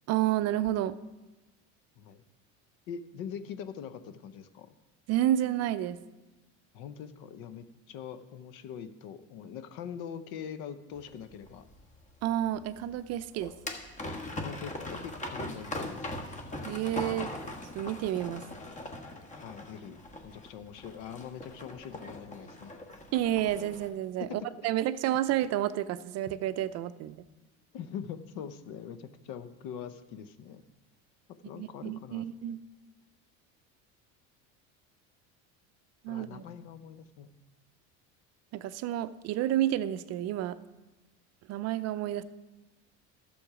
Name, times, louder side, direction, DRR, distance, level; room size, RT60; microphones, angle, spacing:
voice 1, 0.1-1.0 5.1-6.0 12.2-13.5 16.6-17.3 17.7-18.4 23.1-27.2 31.6-32.6 36.0-36.4 38.5-40.6 41.5-42.2, right 12 dB, 50° right, 13 dB, 0.5 m, -30 dB
voice 2, 2.9-4.7 6.7-11.7 14.4-16.1 19.3-22.7 24.2-24.4 27.7-30.6 31.4-32.2 36.1-37.3, left 8 dB, 65° left, 11 dB, 0.8 m, -43 dB
sound 1, 11.0-23.9, left 1 dB, 20° left, 1.2 m, -41 dB
12.0 x 7.1 x 4.9 m, 1.1 s
cardioid pair, 130°, 34 cm